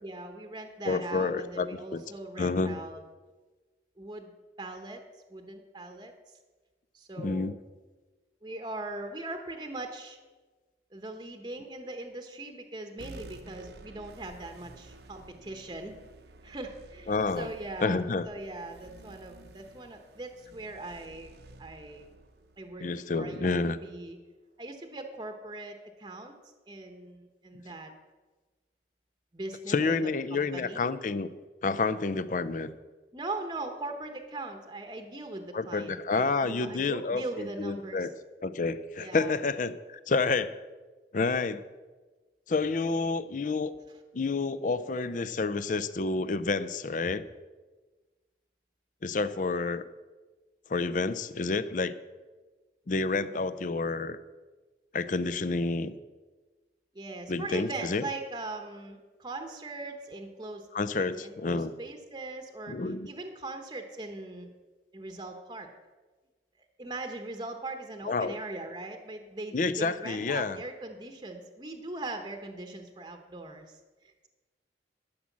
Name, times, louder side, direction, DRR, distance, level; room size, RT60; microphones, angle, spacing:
voice 1, 0.0-3.0 4.0-4.3 4.6-5.0 5.3-6.1 6.9-7.6 8.4-10.2 10.9-16.0 16.4-21.3 21.6-22.1 22.6-24.2 24.6-26.3 26.7-27.9 29.3-30.0 30.3-30.9 33.1-38.1 39.0-39.4 56.9-60.7 60.9-64.5 64.9-65.7 66.8-74.3, right 2 dB, 25° right, 5 dB, 0.9 m, -40 dB
voice 2, 0.8-2.0 2.4-2.8 7.2-7.6 17.1-17.5 17.8-18.3 22.8-23.8 29.7-31.3 31.6-32.7 35.5-38.1 38.4-40.6 41.1-41.6 42.5-43.7 44.1-47.3 49.0-49.8 50.7-51.9 52.9-54.2 54.9-55.9 57.3-58.1 60.7-61.7 62.7-63.1 68.0-68.4 69.5-70.6, left 3 dB, 45° left, 14 dB, 0.5 m, -29 dB
sound 1, 13.0-23.8, right 2 dB, 65° right, 0.7 m, -52 dB
12.5 x 6.3 x 7.2 m, 1.3 s
head